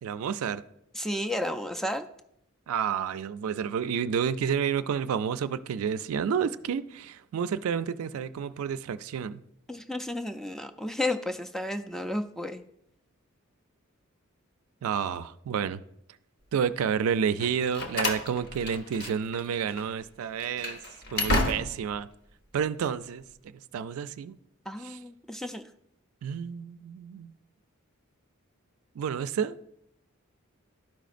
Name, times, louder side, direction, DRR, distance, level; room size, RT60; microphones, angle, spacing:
voice 1, 0.0-0.6 2.7-9.4 14.8-15.8 16.5-20.8 21.1-22.1 22.5-23.2 23.7-24.4 24.8-25.0 26.2-27.3 29.0-29.6, right 7 dB, 80° right, 14 dB, 0.3 m, -30 dB
voice 2, 0.9-2.0 9.7-12.6 24.7-25.6, left 1 dB, ahead, 6 dB, 0.3 m, -32 dB
Slam, 17.4-19.4 19.7-19.9 20.4-22.0, left 1 dB, 50° left, 1.0 m, -31 dB
12.5 x 5.0 x 2.5 m, 0.76 s
head